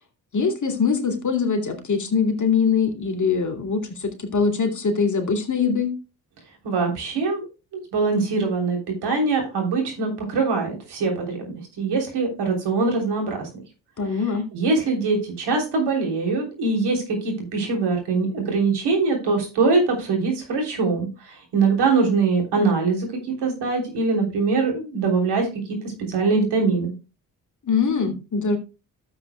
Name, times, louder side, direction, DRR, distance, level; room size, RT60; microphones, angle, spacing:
voice 1, 0.3-5.9 14.0-14.5 27.6-28.6, left 5 dB, 45° left, 3 dB, 2.5 m, -22 dB
voice 2, 6.6-7.5 7.9-13.5 14.5-25.5 26.1-26.9, right 4 dB, 70° right, 2 dB, 3.4 m, -23 dB
13.0 x 8.0 x 2.2 m, 0.30 s
hypercardioid pair, 45°, 42 cm